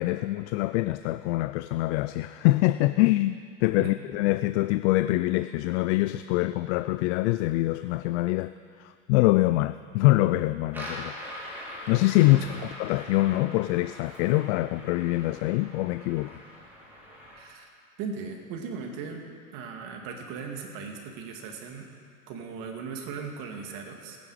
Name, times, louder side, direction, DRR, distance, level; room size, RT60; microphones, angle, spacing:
voice 1, 0.0-11.2 11.9-16.4, left 18 dB, 60° left, 13 dB, 0.5 m, -24 dB
sound 1, 10.7-17.4, equal, 5° right, 3.8 m, -42 dB
voice 2, 17.4-17.7 18.0-19.2 19.5-21.9 22.3-24.2, right 5 dB, 50° right, 2 dB, 2.3 m, -38 dB
20.0 x 9.4 x 4.9 m, 2.2 s
supercardioid pair, 115°, 41 cm